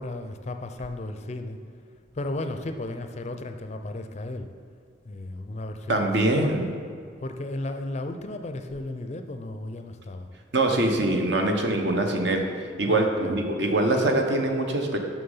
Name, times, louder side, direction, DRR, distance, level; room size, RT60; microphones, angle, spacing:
voice 1, 0.0-1.6 2.1-4.5 5.1-6.6 7.2-10.3 12.9-13.5, left 2 dB, 35° left, 7 dB, 0.4 m, -34 dB
voice 2, 5.9-6.8 10.5-15.0, right 2 dB, 65° right, 3 dB, 0.9 m, -24 dB
6.6 x 6.2 x 5.5 m, 2.2 s
head